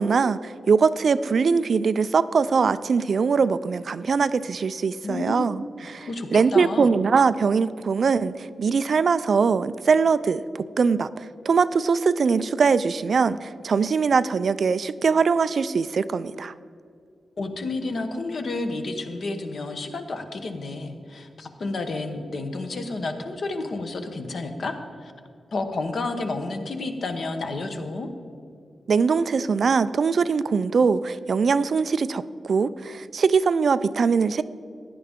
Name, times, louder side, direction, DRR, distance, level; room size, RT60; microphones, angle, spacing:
voice 1, 0.0-16.5 28.9-34.4, right 5 dB, 50° right, 14 dB, 0.3 m, -22 dB
voice 2, 5.0-5.5 6.0-6.9 17.4-24.7 25.0-25.1 25.5-28.1, left 3 dB, 55° left, 6 dB, 1.1 m, -30 dB
16.5 x 10.5 x 3.6 m, 2.3 s
wide cardioid pair, 170°, 0 cm